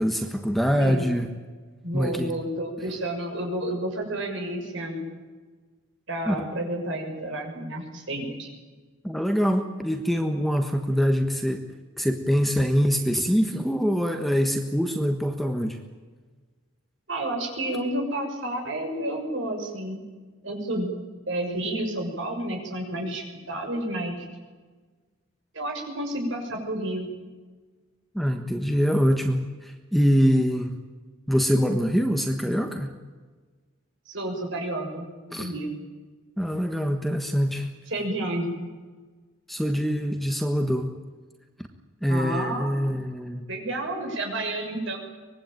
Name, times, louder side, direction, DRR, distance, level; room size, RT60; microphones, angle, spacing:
voice 1, 0.0-1.3 1.9-2.3 6.2-6.4 9.0-11.7 12.0-15.8 28.1-30.7 31.3-32.9 35.3-35.5 36.4-37.7 39.5-40.9 42.0-43.5, equal, ahead, 5 dB, 1.3 m, -24 dB
voice 2, 1.8-5.1 6.1-8.5 17.1-20.0 20.4-20.9 21.3-24.2 25.5-27.1 34.1-35.7 37.9-38.5 42.1-43.0 43.5-45.0, right 1 dB, 60° right, 2 dB, 6.8 m, -30 dB
24.0 x 21.0 x 9.2 m, 1.4 s
head